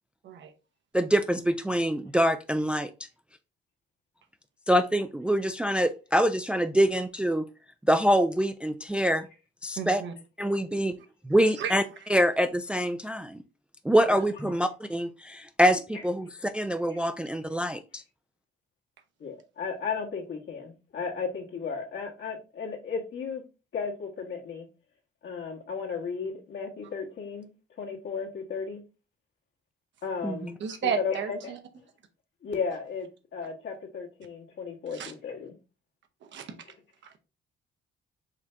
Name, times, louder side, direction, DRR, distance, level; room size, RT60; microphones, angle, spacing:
voice 1, 0.9-2.9 4.7-7.5 7.9-9.3 9.6-10.0 10.4-10.9 11.2-11.8 12.1-13.4 13.8-18.0 30.2-30.5, equal, 5° right, 0.3 m, -25 dB
voice 2, 9.8-10.1 11.5-11.7 30.6-31.6 34.9-35.1 36.2-36.6 37.0-37.2, right 7 dB, 70° right, 1.0 m, -33 dB
voice 3, 19.2-23.4 23.7-24.7 25.2-27.5 27.8-28.8 30.0-30.5 30.8-31.5 32.4-35.5, left 5 dB, 70° left, 1.7 m, -34 dB
4.9 x 2.8 x 3.4 m
cardioid pair, 90°, 20 cm